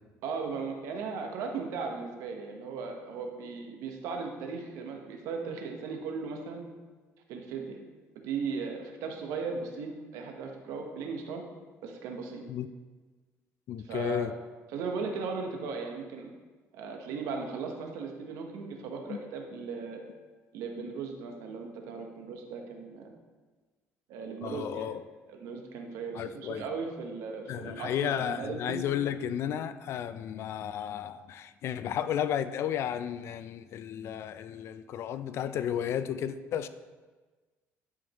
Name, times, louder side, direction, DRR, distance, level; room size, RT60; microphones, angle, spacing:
voice 1, 0.2-6.7 7.3-7.8 8.2-11.4 11.8-12.4 13.8-14.4 14.7-16.3 16.7-20.0 20.5-23.1 24.1-24.9 25.3-28.8, right 4 dB, 85° right, 3 dB, 1.1 m, -37 dB
voice 2, 13.7-14.3 19.1-19.2 20.8-20.9 24.4-25.0 26.1-26.7 27.5-36.7, left 9 dB, 55° left, 12 dB, 0.4 m, -33 dB
11.0 x 5.0 x 3.0 m, 1.3 s
cardioid pair, 135°, 5 cm